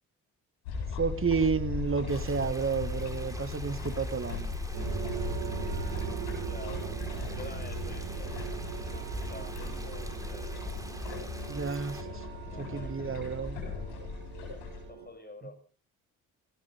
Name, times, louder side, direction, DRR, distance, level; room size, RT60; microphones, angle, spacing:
sound 1, 0.6-14.8, left 4 dB, 85° left, 7.5 m, -38 dB
voice 1, 0.9-4.6 11.5-12.2 12.6-13.6 15.4-15.5, right 5 dB, 35° right, 11 dB, 2.0 m, -31 dB
Small waterfall, 2.1-12.0, right 1 dB, 10° right, 4.2 m, -48 dB
sound 2, 4.7-15.1, right 8 dB, 75° right, 4.9 m, -39 dB
voice 2, 6.4-7.0 7.3-11.0 12.3-13.2 14.9-15.6, left 2 dB, 25° left, 6 dB, 7.4 m, -49 dB
21.5 x 16.5 x 3.6 m, 0.38 s
hypercardioid pair, 45°, 39 cm